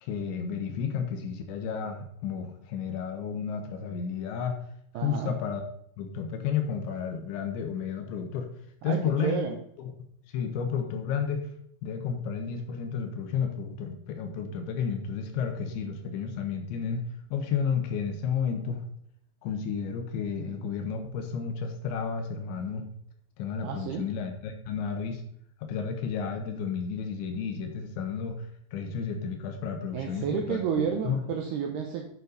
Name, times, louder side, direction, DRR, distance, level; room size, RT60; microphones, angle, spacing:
voice 1, 0.0-4.6 5.0-5.6 6.0-8.5 8.8-9.4 9.8-9.9 10.3-11.5 11.8-17.0 17.3-18.8 19.4-22.9 23.4-25.2 25.6-30.6 31.1-31.2, left 6 dB, 75° left, 5 dB, 3.0 m, -32 dB
voice 2, 4.9-5.3 8.9-9.6 23.6-24.1 29.9-32.1, right 7 dB, 85° right, 2 dB, 2.3 m, -31 dB
9.3 x 6.4 x 4.0 m, 0.70 s
omnidirectional pair, 5.7 m